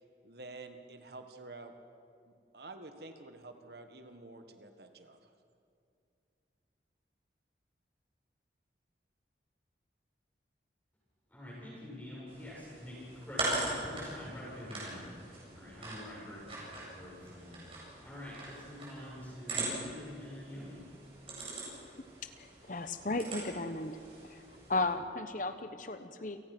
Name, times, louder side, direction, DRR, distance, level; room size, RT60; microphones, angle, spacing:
voice 1, 0.0-1.7 2.3-5.3, right 2 dB, 60° right, 7 dB, 1.6 m, -49 dB
voice 2, 11.3-20.8, left 1 dB, 10° left, -7 dB, 7.8 m, -46 dB
sound 1, 12.3-24.8, right 2 dB, 30° right, 7.8 m, -41 dB
voice 3, 22.2-24.0 24.3-24.4 24.7-26.4, left 2 dB, 45° left, 9 dB, 1.0 m, -35 dB
29.0 x 18.5 x 6.1 m, 2.5 s
head